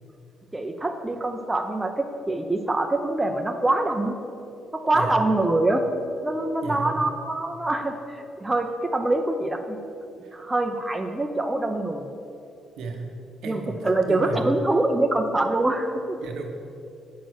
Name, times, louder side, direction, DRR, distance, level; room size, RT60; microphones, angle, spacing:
voice 1, 0.5-4.2 4.7-5.9 6.2-9.8 10.3-12.1 13.4-16.2, right 2 dB, 15° right, 4 dB, 0.7 m, -24 dB
voice 2, 4.9-5.3 6.6-7.2 10.2-10.4 12.8-13.0 13.4-14.6 16.2-16.4, right 4 dB, 85° right, 3 dB, 1.2 m, -33 dB
8.2 x 6.2 x 6.5 m, 2.6 s
cardioid pair, 90°, 0 cm